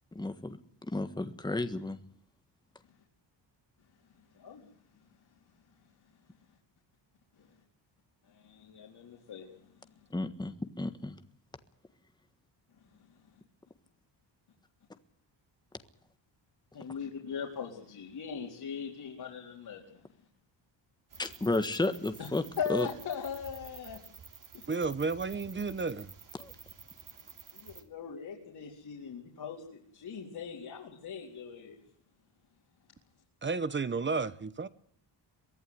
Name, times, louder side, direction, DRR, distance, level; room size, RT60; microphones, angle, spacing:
voice 1, 0.1-2.0 10.1-11.2 21.2-22.4 22.7-22.9 26.4-26.5, left 2 dB, 10° left, 1.5 m, -32 dB
voice 2, 4.3-4.7 7.4-7.5 8.3-10.1 12.8-13.2 16.7-20.0 22.2-22.3 22.6-24.0 24.5-24.7 27.5-31.8, left 6 dB, 60° left, 4.1 m, -40 dB
sound 1, 21.1-27.8, right 6 dB, 45° right, 3.1 m, -51 dB
voice 3, 24.7-26.1 33.4-34.7, right 4 dB, 25° right, 1.1 m, -32 dB
23.5 x 15.0 x 9.5 m
cardioid pair, 135°, 44 cm